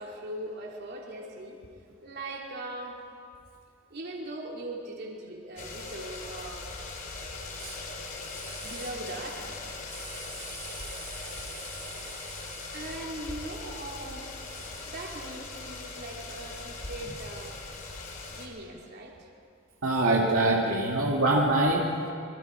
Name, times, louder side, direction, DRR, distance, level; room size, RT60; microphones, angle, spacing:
voice 1, 0.0-1.6 2.0-3.0 3.9-6.7 8.6-9.6 12.7-14.3 14.9-17.6 18.3-19.3, right 1 dB, 50° right, -1 dB, 3.3 m, -40 dB
sound 1, 5.6-18.5, left 3 dB, 40° left, 2.8 m, -40 dB
voice 2, 9.9-11.4 19.8-22.0, right 2 dB, 80° right, -2 dB, 2.2 m, -26 dB
26.5 x 22.5 x 4.7 m, 2.3 s
head